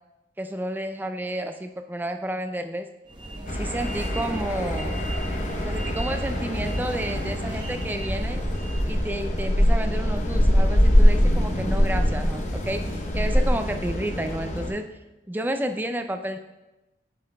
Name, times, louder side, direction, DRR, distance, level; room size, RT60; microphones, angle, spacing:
voice 1, 0.4-2.9 3.5-4.9 5.6-8.4 8.8-15.0 15.3-16.4, right 1 dB, 10° right, 7 dB, 0.3 m, -31 dB
sound 1, 3.1-9.0, right 1 dB, 25° right, 0.7 m, -37 dB
sound 2, 3.5-14.7, equal, 40° left, 0.8 m, -23 dB
8.4 x 7.3 x 2.2 m, 1.0 s
head